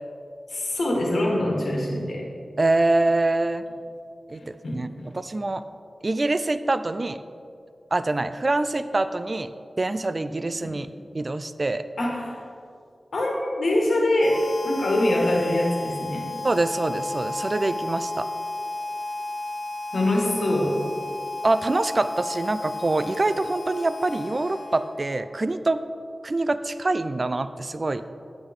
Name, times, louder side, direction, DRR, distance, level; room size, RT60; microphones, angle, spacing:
voice 1, 0.5-2.2 4.6-4.7 12.0-12.4 13.1-16.3 19.9-20.7, left 1 dB, 80° left, -1 dB, 1.9 m, -23 dB
voice 2, 2.6-3.6 4.3-4.9 5.1-5.6 6.0-7.2 7.9-9.5 9.8-10.9 11.1-11.9 16.4-18.3 21.4-25.8 26.2-28.0, right 2 dB, 40° right, 12 dB, 0.4 m, -25 dB
Harmonica, 14.2-25.2, left 2 dB, 30° left, 0.9 m, -33 dB
9.9 x 8.7 x 3.7 m, 2.4 s
wide cardioid pair, 70°, 0 cm